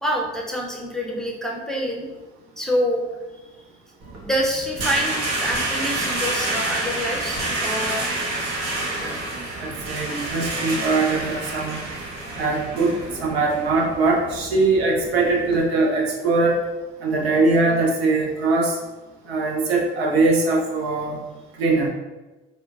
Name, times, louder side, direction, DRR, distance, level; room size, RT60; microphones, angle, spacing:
voice 1, 0.0-2.1 2.6-3.0 4.2-8.1, equal, ahead, -1 dB, 0.6 m, -26 dB
sound 1, 4.0-15.6, right 2 dB, 60° right, 0.8 m, -29 dB
voice 2, 9.6-11.8 12.4-16.6 17.0-18.8 19.3-21.2 21.6-21.9, right 3 dB, 85° right, 0 dB, 0.5 m, -21 dB
4.3 x 2.1 x 2.3 m, 1.1 s
hypercardioid pair, 55°, 31 cm